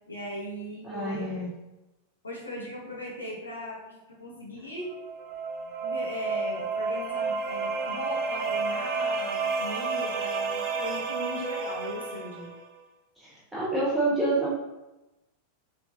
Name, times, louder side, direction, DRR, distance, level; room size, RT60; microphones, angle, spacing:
voice 1, 0.1-1.3 2.2-4.9 5.8-12.5, left 1 dB, 75° left, -4 dB, 0.6 m, -38 dB
voice 2, 0.8-1.5 13.2-14.5, right 2 dB, 10° right, -7 dB, 0.7 m, -28 dB
sound 1, 4.8-12.6, right 4 dB, 45° right, 0.4 m, -31 dB
3.3 x 2.4 x 2.2 m, 1.0 s
figure-of-eight pair, 90°, 0 cm